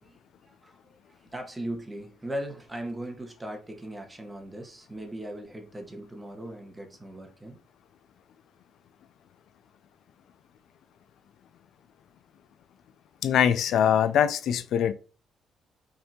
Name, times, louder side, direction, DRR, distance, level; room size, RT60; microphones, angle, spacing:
voice 1, 0.0-7.6, right 1 dB, 15° right, 1.0 m, -39 dB
voice 2, 13.2-14.9, left 9 dB, 75° left, 0.4 m, -23 dB
5.1 x 2.7 x 2.8 m
cardioid pair, 90°, 0 cm